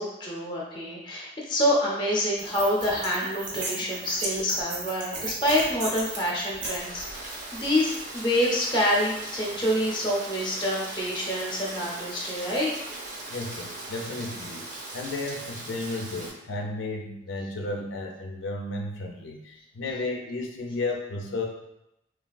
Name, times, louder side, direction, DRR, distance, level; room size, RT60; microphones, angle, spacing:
voice 1, 0.0-12.7, equal, 25° left, -3 dB, 0.6 m, -27 dB
sound 1, 2.4-8.0, right 2 dB, 85° right, 0.9 m, -36 dB
Rain, 6.8-16.3, right 2 dB, 40° right, 0.5 m, -39 dB
voice 2, 13.3-14.7 14.9-21.5, left 2 dB, 85° left, 2 dB, 0.4 m, -33 dB
3.3 x 2.3 x 2.3 m, 0.84 s
head